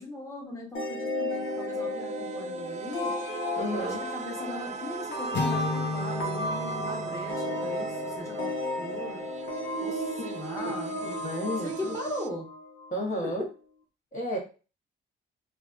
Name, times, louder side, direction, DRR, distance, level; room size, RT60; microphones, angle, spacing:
voice 1, 0.0-3.1 3.8-8.5 8.8-9.3 9.8-11.0 11.6-12.5 13.2-13.3, left 1 dB, 15° left, -1 dB, 1.2 m, -39 dB
sound 1, 0.7-13.2, left 2 dB, 80° left, 1.0 m, -34 dB
sound 2, 1.3-12.3, right 7 dB, 35° right, 0.4 m, -39 dB
voice 2, 3.6-4.0 10.2-10.3 10.6-12.0 12.9-13.4 14.1-14.4, equal, 40° left, -3 dB, 1.1 m, -33 dB
sound 3, 5.3-9.4, left 3 dB, 60° left, 0.8 m, -35 dB
3.2 x 2.4 x 2.4 m, 0.34 s
cardioid pair, 90°, 20 cm